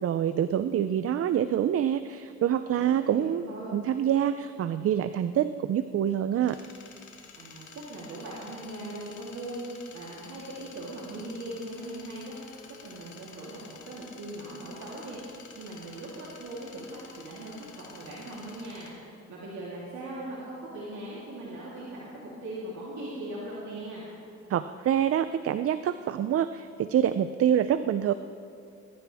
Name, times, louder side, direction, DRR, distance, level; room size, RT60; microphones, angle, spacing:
voice 1, 0.0-3.4 3.7-6.6 24.5-28.1, right 10 dB, 50° right, 12 dB, 0.5 m, -26 dB
voice 2, 2.7-3.7 7.3-9.6 9.9-12.4 12.8-15.2 15.5-18.9 19.3-24.0, right 1 dB, 70° right, -7 dB, 3.4 m, -40 dB
sound 1, 6.4-18.9, left 6 dB, 75° left, 2.2 m, -50 dB
21.0 x 14.5 x 3.5 m, 2.6 s
cardioid pair, 90°, 30 cm